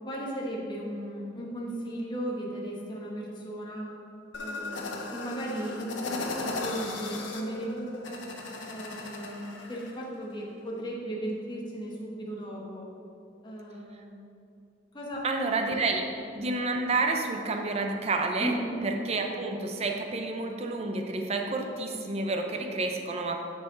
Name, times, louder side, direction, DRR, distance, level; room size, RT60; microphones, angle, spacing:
voice 1, 0.1-3.9 4.4-8.2 8.7-12.9 13.4-14.1 14.9-15.2 15.6-15.8 18.4-18.8, right 1 dB, 25° left, -4 dB, 1.2 m, -36 dB
sound 1, 4.3-9.9, left 2 dB, 85° left, 0.9 m, -37 dB
voice 2, 15.2-18.5 18.8-23.4, right 3 dB, 35° right, 3 dB, 0.6 m, -29 dB
9.9 x 4.7 x 3.9 m, 2.7 s
head